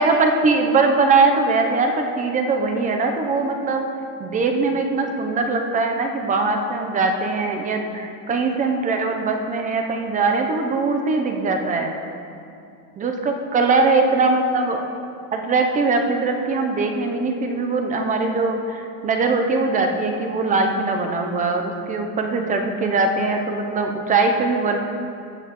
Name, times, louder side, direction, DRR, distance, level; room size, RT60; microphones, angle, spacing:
voice 1, 0.0-3.9 4.2-11.9 13.0-14.8 15.3-24.8, right 3 dB, 20° right, 4 dB, 0.4 m, -21 dB
14.5 x 7.1 x 2.9 m, 2.5 s
supercardioid pair, 140°, 47 cm